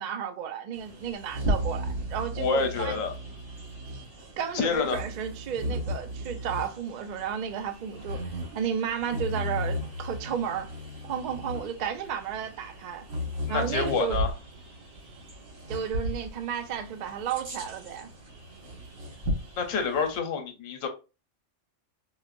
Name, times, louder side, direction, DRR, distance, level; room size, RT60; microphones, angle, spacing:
voice 1, 0.0-3.0 4.4-8.2 8.5-10.7 11.0-13.1 13.5-14.2 15.7-18.1, right 8 dB, 60° right, 0.4 m, -33 dB
Bird vocalization bird call bird song, 0.7-20.2, equal, 90° right, 1.7 m, -35 dB
voice 2, 2.4-3.1 4.5-5.0 13.5-14.3 19.6-20.9, left 5 dB, 85° left, 1.2 m, -28 dB
4.8 x 2.1 x 2.5 m
omnidirectional pair, 1.4 m